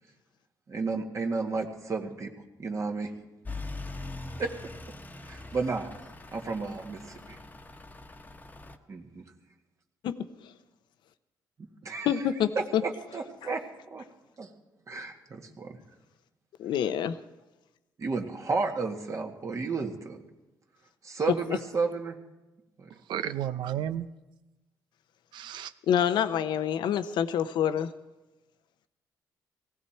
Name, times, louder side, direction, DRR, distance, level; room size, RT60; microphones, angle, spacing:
voice 1, 0.7-2.3 2.6-3.1 4.4-4.5 5.3-5.9 6.3-7.4 8.9-9.2 11.8-14.0 14.4-14.5 14.9-15.8 18.0-20.2 21.0-22.2 22.8-22.9, right 4 dB, 45° right, 2 dB, 2.0 m, -32 dB
Truck / Idling, 3.5-8.8, left 2 dB, 20° left, 1.2 m, -42 dB
voice 2, 10.0-10.5 12.0-12.9 13.4-13.5 16.6-17.2 25.9-27.9, left 9 dB, 75° left, 11 dB, 0.8 m, -27 dB
voice 3, 23.1-24.1 25.3-25.7, right 10 dB, 80° right, 13 dB, 0.7 m, -32 dB
18.5 x 15.5 x 4.5 m, 1.1 s
cardioid pair, 80°, 8 cm